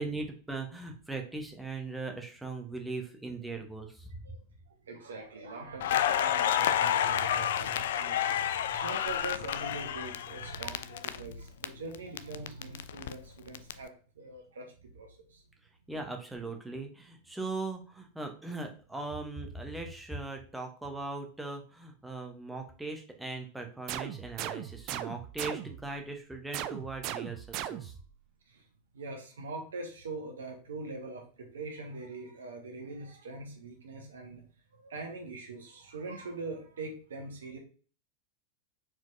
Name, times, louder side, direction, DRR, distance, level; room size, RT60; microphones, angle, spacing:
voice 1, 0.0-4.1 15.9-27.9, right 3 dB, 5° right, 2 dB, 1.0 m, -39 dB
voice 2, 4.7-15.4 28.5-28.6 28.9-34.4 34.7-37.6, right 3 dB, 65° right, 2 dB, 1.1 m, -42 dB
Crackle, 5.8-11.7 11.9-13.7, left 10 dB, 60° left, 0.3 m, -30 dB
sound 1, 23.9-25.9 26.5-28.1, right 11 dB, 40° right, 0.3 m, -38 dB
4.5 x 4.3 x 2.7 m, 0.39 s
figure-of-eight pair, 90°, 0 cm